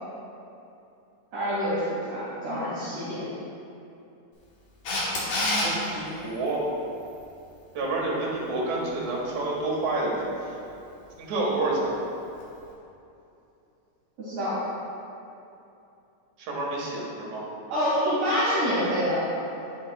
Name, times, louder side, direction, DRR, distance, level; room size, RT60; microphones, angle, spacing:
voice 1, 1.3-3.2 14.2-14.6 17.7-19.2, equal, 60° right, -12 dB, 3.1 m, -26 dB
Camera, 4.9-5.7 12.4-12.5, left 1 dB, 60° left, 2.4 m, -26 dB
voice 2, 5.6-6.6 7.7-10.6 11.2-12.1 16.4-17.5, right 2 dB, 75° right, -4 dB, 2.8 m, -29 dB
9.7 x 8.7 x 2.3 m, 2.7 s
omnidirectional pair, 3.3 m